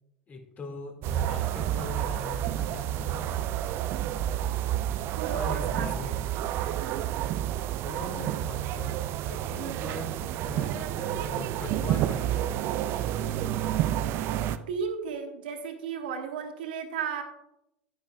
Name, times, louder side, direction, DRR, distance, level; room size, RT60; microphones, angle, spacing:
voice 1, 0.3-3.6 5.3-6.3 7.8-12.6, left 2 dB, 25° left, 4 dB, 1.9 m, -40 dB
sound 1, 1.0-14.6, right 12 dB, 45° right, 0.5 m, -30 dB
voice 2, 5.2-6.4 14.7-17.2, right 6 dB, 65° right, 5 dB, 1.3 m, -34 dB
10.5 x 10.5 x 2.2 m, 0.85 s
figure-of-eight pair, 80°, 6 cm